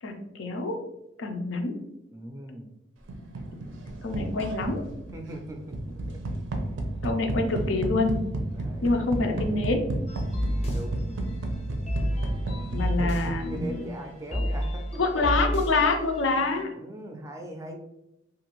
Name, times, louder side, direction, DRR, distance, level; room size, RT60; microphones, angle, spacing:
voice 1, 0.0-0.7 1.2-1.8 4.0-4.8 7.0-8.2 8.8-9.9 12.7-13.8 15.0-16.7, left 3 dB, 80° left, 5 dB, 0.5 m, -26 dB
voice 2, 2.1-2.7 5.1-5.8 6.1-6.2 8.5-9.0 10.7-11.2 13.0-13.2 13.5-15.0 16.7-17.8, right 1 dB, 15° right, 3 dB, 0.3 m, -40 dB
sound 1, 3.1-14.0, right 2 dB, 80° right, 0.5 m, -33 dB
sound 2, 10.1-16.6, equal, 35° left, 0.6 m, -31 dB
2.7 x 2.4 x 3.0 m, 0.87 s
head